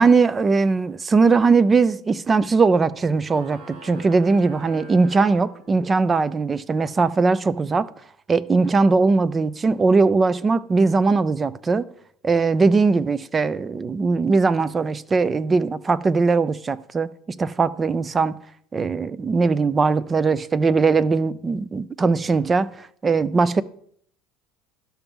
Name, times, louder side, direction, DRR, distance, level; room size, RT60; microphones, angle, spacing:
voice 1, 0.0-7.9 8.3-11.9 12.2-17.1 17.4-18.4 18.7-23.6, right 4 dB, 20° right, 0.4 m, -20 dB
sound 1, 3.2-6.1, equal, 70° right, 2.9 m, -44 dB
11.5 x 5.8 x 3.6 m
supercardioid pair, 125°, 0 cm